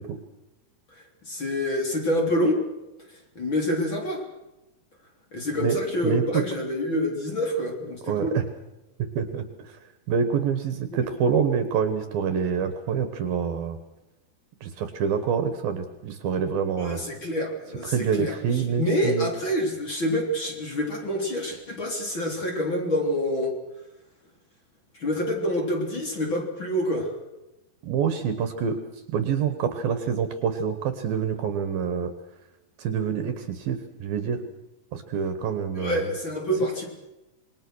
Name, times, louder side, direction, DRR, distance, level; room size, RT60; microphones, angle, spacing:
voice 1, 0.9-2.6 3.4-4.2 5.3-8.4 10.9-11.0 16.8-23.5 24.9-27.1 35.8-36.8, left 1 dB, 30° left, 1 dB, 3.7 m, -27 dB
voice 2, 6.0-6.4 8.1-8.4 9.2-9.7 10.1-13.8 14.6-17.0 17.8-19.3 27.8-28.8 29.1-32.1 32.8-34.4 34.9-36.1, right 7 dB, 65° right, 9 dB, 2.9 m, -26 dB
27.0 x 22.0 x 6.4 m, 0.98 s
omnidirectional pair, 5.0 m